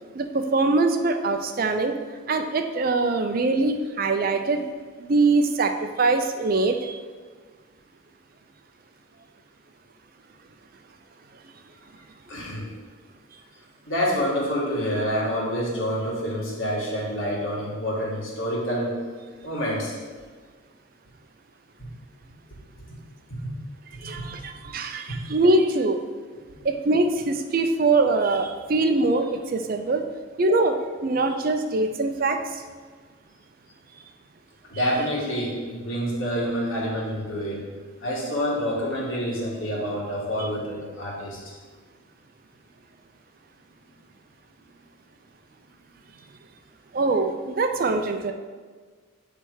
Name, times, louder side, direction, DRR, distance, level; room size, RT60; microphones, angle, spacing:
voice 1, 0.1-1.9 2.3-4.6 5.0-7.0 24.0-26.0 26.6-30.0 30.4-30.7 31.0-32.4 40.4-40.5 46.9-48.3, right 3 dB, 45° right, 6 dB, 0.4 m, -23 dB
voice 2, 12.3-12.7 13.9-18.9 19.4-20.0 21.8-21.9 23.3-23.6 24.0-24.1 25.1-25.2 34.7-37.6 38.0-41.5, equal, 75° left, -4 dB, 1.7 m, -27 dB
7.8 x 3.3 x 4.6 m, 1.5 s
head